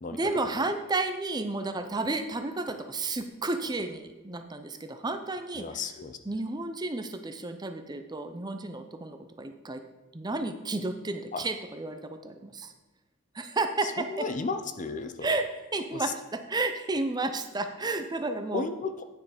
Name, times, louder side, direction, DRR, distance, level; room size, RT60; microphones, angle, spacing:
voice 1, 0.1-5.7 6.3-9.8 10.1-12.7 13.3-14.2 15.2-15.5 15.7-18.7, right 2 dB, 20° right, 7 dB, 0.6 m, -32 dB
voice 2, 5.6-6.2 11.3-11.4 13.8-15.4 15.9-16.1 18.5-19.0, left 4 dB, 35° left, 9 dB, 0.5 m, -34 dB
9.4 x 6.5 x 5.0 m, 1.2 s
head